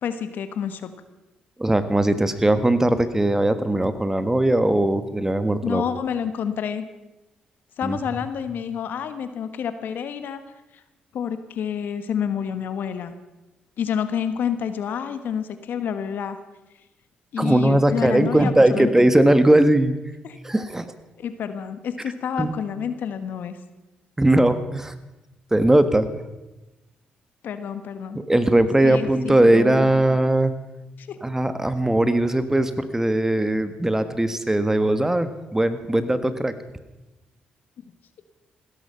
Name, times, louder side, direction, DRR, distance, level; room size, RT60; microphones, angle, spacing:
voice 1, 0.0-0.9 5.6-6.8 7.8-10.4 11.1-13.1 13.8-16.4 17.3-18.9 20.2-20.4 21.2-23.6 27.4-28.2 28.8-30.0 31.0-31.2, left 8 dB, 70° left, 11 dB, 1.4 m, -28 dB
voice 2, 1.6-5.9 7.8-8.0 17.4-19.9 20.4-20.9 22.4-22.5 24.2-24.9 25.5-26.1 28.1-30.5 31.2-36.5, right 1 dB, 15° right, 11 dB, 1.5 m, -19 dB
16.0 x 14.0 x 5.7 m, 1.0 s
supercardioid pair, 60°, 3 cm